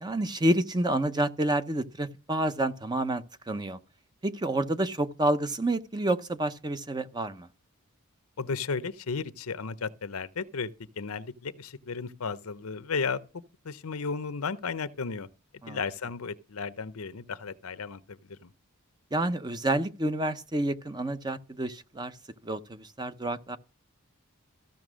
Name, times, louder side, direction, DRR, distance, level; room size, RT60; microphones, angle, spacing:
voice 1, 0.0-3.8 4.2-7.5 15.6-15.8 19.1-22.1 22.4-23.6, right 1 dB, 20° right, 0.7 m, -29 dB
voice 2, 8.4-10.7 11.0-13.2 13.6-15.3 15.7-18.5, left 5 dB, 75° left, 0.7 m, -34 dB
14.5 x 5.9 x 6.2 m
head